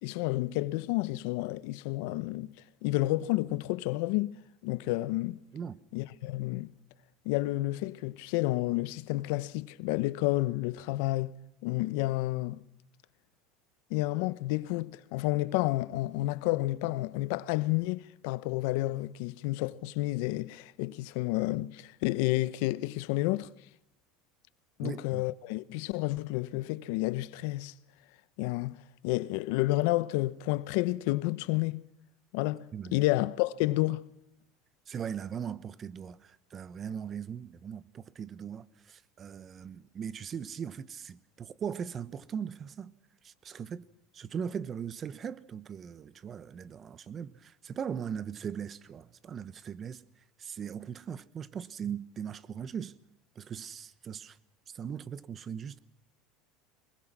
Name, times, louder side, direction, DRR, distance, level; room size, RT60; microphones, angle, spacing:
voice 1, 0.0-2.5 2.8-4.4 4.6-5.4 5.9-6.7 7.2-12.6 13.9-23.5 24.8-27.7 28.4-31.9 32.3-34.1, left 18 dB, 70° left, 0.9 m, -30 dB
voice 2, 24.8-25.2 32.7-33.0 34.9-42.9 43.2-43.9 44.1-50.0 50.4-52.9 53.3-54.4 54.7-55.8, right 7 dB, 30° right, 1.0 m, -39 dB
23.5 x 21.0 x 6.1 m
supercardioid pair, 120°, 0 cm